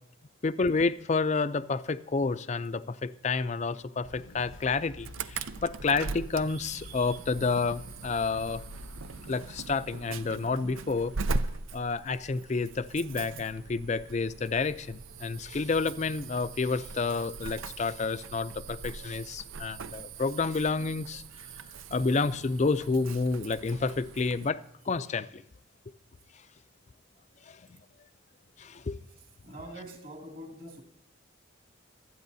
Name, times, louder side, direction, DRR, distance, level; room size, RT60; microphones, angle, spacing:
voice 1, 0.4-8.6 9.3-11.1 11.7-21.2 21.9-24.6 24.9-25.4 27.5-27.6 28.6-29.0, left 4 dB, 35° left, 0.4 m, -29 dB
sound 1, 4.0-9.6, left 2 dB, 75° left, 0.7 m, -49 dB
Insect / Alarm, 5.0-24.5, right 4 dB, 80° right, 0.5 m, -40 dB
voice 2, 29.1-30.8, right 1 dB, 45° right, 2.3 m, -45 dB
25.5 x 9.3 x 2.7 m
head